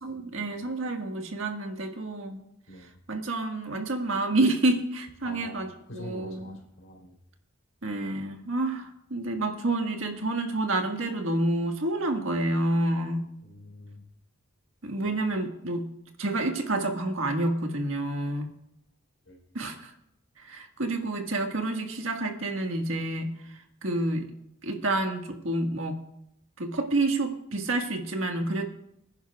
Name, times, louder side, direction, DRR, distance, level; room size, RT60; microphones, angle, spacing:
voice 1, 0.0-2.4 3.1-6.6 7.8-13.3 14.8-15.9 16.2-18.5 19.5-19.9 20.4-24.2 24.6-26.0 26.6-28.7, right 2 dB, 70° right, 3 dB, 1.6 m, -29 dB
voice 2, 2.7-3.0 5.2-5.6 5.9-7.2 13.4-14.0 15.0-15.2 19.2-19.4, left 1 dB, 65° left, 0 dB, 3.7 m, -45 dB
24.0 x 10.5 x 2.4 m, 0.78 s
head